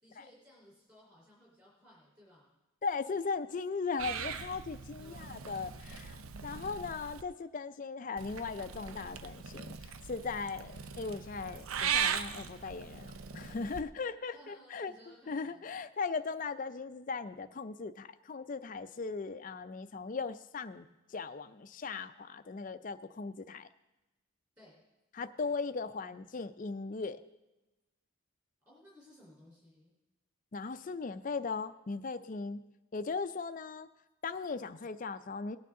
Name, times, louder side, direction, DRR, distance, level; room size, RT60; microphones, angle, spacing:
voice 1, 0.0-2.5 5.0-5.5 14.3-15.6 24.6-24.8 28.7-29.9, equal, 15° right, -5 dB, 3.8 m, -59 dB
voice 2, 2.8-14.9 15.3-20.8 21.1-23.7 25.1-27.2 30.5-32.6 32.9-33.9 34.2-35.6, left 4 dB, 40° left, 10 dB, 0.4 m, -38 dB
Purr / Meow, 4.0-7.2 8.2-13.8, right 7 dB, 80° right, 0.6 m, -39 dB
18.5 x 9.3 x 3.7 m, 1.0 s
head